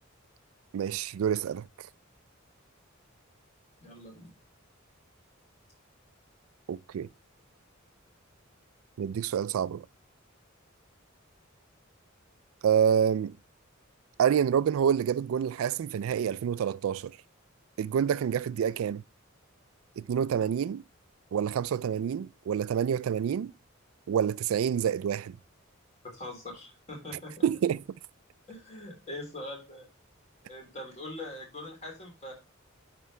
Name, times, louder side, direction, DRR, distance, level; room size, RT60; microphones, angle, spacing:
voice 1, 0.7-1.7 6.7-7.1 9.0-9.9 12.6-13.3 14.2-17.2 17.8-19.0 20.0-20.8 21.3-23.5 24.1-25.4 27.4-27.8, right 8 dB, 90° right, 0.3 m, -27 dB
voice 2, 3.8-4.3 26.1-27.5 28.5-29.9 30.5-32.3, left 1 dB, 35° left, 3.4 m, -42 dB
9.6 x 4.7 x 3.2 m
head